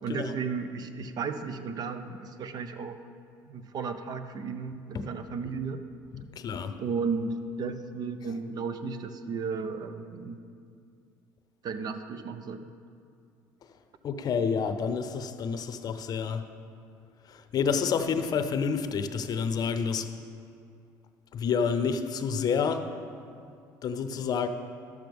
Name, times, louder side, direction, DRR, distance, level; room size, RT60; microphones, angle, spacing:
voice 1, 0.0-3.0 3.5-5.8 6.8-10.4 11.6-12.7, right 5 dB, 50° right, 10 dB, 0.6 m, -34 dB
voice 2, 6.2-6.7 14.0-16.4 17.3-20.1 21.3-22.9 23.8-24.5, left 6 dB, 50° left, 9 dB, 0.6 m, -29 dB
12.0 x 7.6 x 3.5 m, 2.4 s
supercardioid pair, 85°, 9 cm